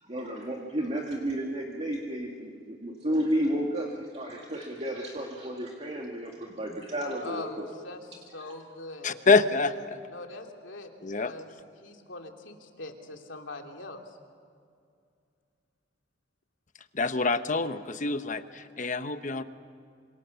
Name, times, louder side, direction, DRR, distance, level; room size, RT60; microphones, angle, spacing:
voice 1, 0.0-7.7, right 1 dB, 35° right, 0 dB, 2.1 m, -32 dB
voice 2, 7.2-8.0 8.3-9.2 10.1-11.5 11.8-14.0, left 2 dB, 90° left, 3 dB, 2.8 m, -42 dB
voice 3, 9.0-10.0 11.0-11.3 16.9-19.4, left 4 dB, 45° left, 10 dB, 1.0 m, -26 dB
28.0 x 26.0 x 7.0 m, 2.3 s
head